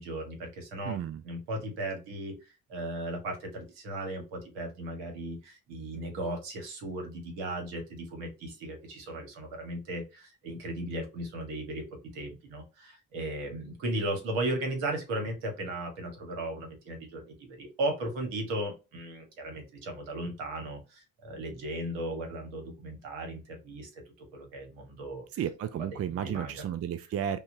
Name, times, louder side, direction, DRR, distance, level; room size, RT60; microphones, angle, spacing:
voice 1, 0.0-1.0 1.2-11.8 12.1-25.3 25.8-26.6, right 1 dB, 75° right, 1.2 m, -36 dB
voice 2, 0.8-1.2 25.4-27.4, right 9 dB, 40° right, 0.5 m, -33 dB
5.4 x 2.2 x 2.6 m
figure-of-eight pair, 40°, 40 cm